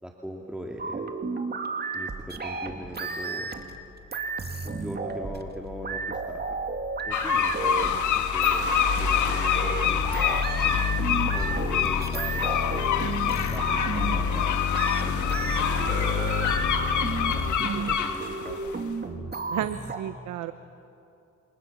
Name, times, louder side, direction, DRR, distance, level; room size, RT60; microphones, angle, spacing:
voice 1, 0.0-1.3 1.9-3.5 4.6-6.6 7.0-10.8 11.3-15.2 15.4-16.4 16.6-16.9 17.3-18.6, equal, 5° right, 0 dB, 2.3 m, -41 dB
sound 1, 0.8-3.8 4.1-5.5 5.8-20.0, right 4 dB, 35° right, 2.2 m, -33 dB
sound 2, 4.2-17.6, left 6 dB, 50° left, 1.7 m, -31 dB
sound 3, 7.1-18.8, left 8 dB, 75° left, 1.8 m, -27 dB
voice 2, 17.6-18.0 19.5-20.5, right 12 dB, 80° right, 11 dB, 0.9 m, -33 dB
28.5 x 26.0 x 7.2 m, 2.7 s
cardioid pair, 90°, 30 cm